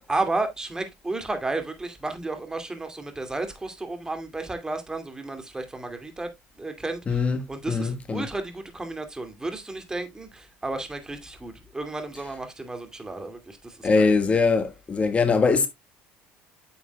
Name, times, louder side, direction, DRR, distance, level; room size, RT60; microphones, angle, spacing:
voice 1, 0.1-6.3 6.6-14.1, right 2 dB, 15° right, 2.4 m, -32 dB
voice 2, 7.1-8.3 13.8-15.7, left 4 dB, 30° left, 1.5 m, -22 dB
9.2 x 7.1 x 2.3 m
hypercardioid pair, 75°, 4 cm